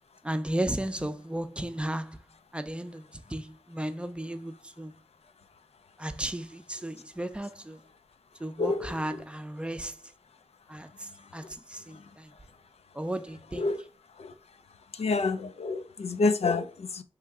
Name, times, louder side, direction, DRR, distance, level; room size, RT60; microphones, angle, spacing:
voice 1, 0.2-2.2 2.5-4.9 6.0-7.8 8.4-10.0 10.7-12.3 12.9-13.7, right 1 dB, 10° right, 0.5 m, -34 dB
voice 2, 8.6-8.9 11.4-11.5 11.9-12.0 13.6-13.8 14.2-14.3 14.9-17.0, left 3 dB, 80° left, 0.5 m, -28 dB
4.6 x 3.1 x 3.5 m
wide cardioid pair, 80°, 11 cm